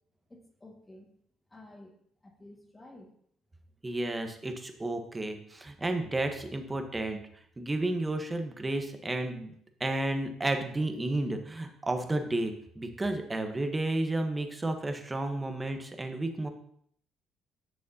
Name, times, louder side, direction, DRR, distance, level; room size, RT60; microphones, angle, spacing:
voice 1, 0.3-1.1 1.5-1.9 2.2-3.1, left 1 dB, 20° left, 1 dB, 1.9 m, -52 dB
voice 2, 3.8-7.2 7.6-9.5 9.8-16.5, right 2 dB, 20° right, 5 dB, 1.3 m, -32 dB
10.5 x 6.3 x 2.9 m, 0.67 s
supercardioid pair, 70°, 0 cm